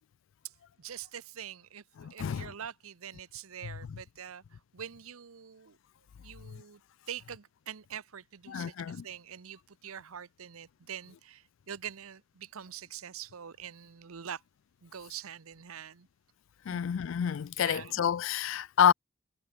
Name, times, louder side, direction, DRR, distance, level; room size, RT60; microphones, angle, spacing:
voice 1, 0.8-5.8 6.2-6.8 7.1-14.4 14.8-16.1 16.7-16.8 17.6-18.0, right 8 dB, 75° right, 0.7 m, -44 dB
voice 2, 2.0-2.5 3.6-4.0 8.5-9.1 16.7-18.9, left 8 dB, 60° left, 0.3 m, -29 dB
head